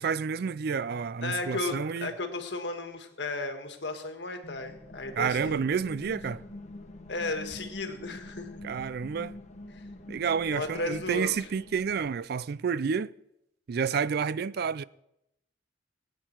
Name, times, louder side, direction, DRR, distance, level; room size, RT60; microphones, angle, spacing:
voice 1, 0.0-2.1 5.2-6.4 8.6-9.4 10.1-13.1 13.7-14.8, right 6 dB, 60° right, 0.4 m, -29 dB
voice 2, 1.2-5.6 7.1-8.6 9.7-9.8 10.5-11.5, left 2 dB, 70° left, 1.6 m, -34 dB
sound 1, 4.4-12.2, left 1 dB, 40° left, 1.1 m, -46 dB
20.5 x 9.1 x 4.5 m
head